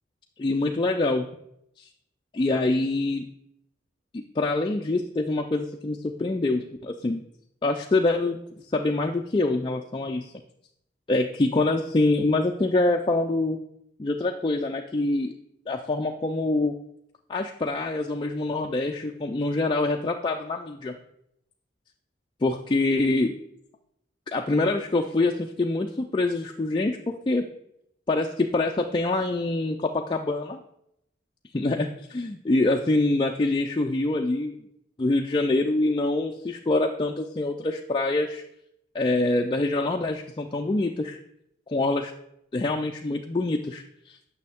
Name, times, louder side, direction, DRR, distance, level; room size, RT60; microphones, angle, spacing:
voice 1, 0.4-1.3 1.8-1.9 2.3-3.2 4.1-7.2 7.6-8.4 8.7-10.3 11.1-13.6 14.0-15.3 15.7-16.7 17.3-20.9 22.4-23.3 24.3-27.5 28.1-30.6 31.5-34.5 35.0-38.4 38.9-41.2 41.7-42.1 42.5-44.2, left 2 dB, 25° left, 2 dB, 0.4 m, -25 dB
9.2 x 6.3 x 3.5 m, 0.76 s
head